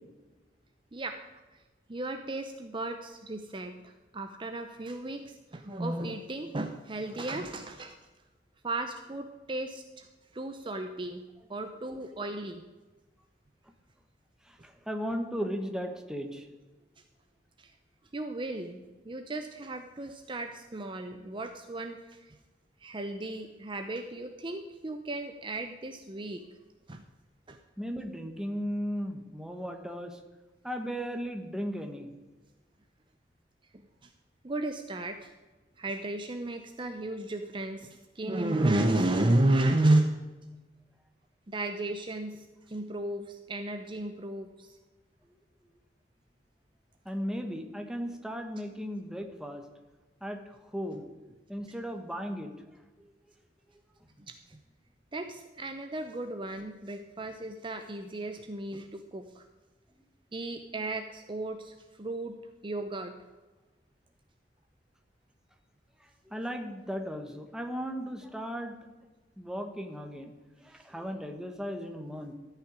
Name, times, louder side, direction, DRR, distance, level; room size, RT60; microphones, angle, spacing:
voice 1, 1.9-8.0 8.6-10.1 10.3-11.2 11.5-12.6 17.6-17.7 18.1-22.4 22.8-26.4 26.9-27.0 27.5-27.6 34.0-34.1 34.4-35.3 35.8-40.2 41.5-44.8 54.2-54.6 55.1-59.4 60.3-62.4 62.6-63.2 70.7-70.8, right 2 dB, 30° right, 7 dB, 0.7 m, -33 dB
voice 2, 14.5-16.5 27.8-30.2 30.6-32.1 47.0-49.6 50.2-51.0 51.5-52.5 66.0-68.8 69.4-70.3 70.6-72.3, equal, 5° right, 4 dB, 1.2 m, -36 dB
13.5 x 5.8 x 9.6 m, 1.2 s
head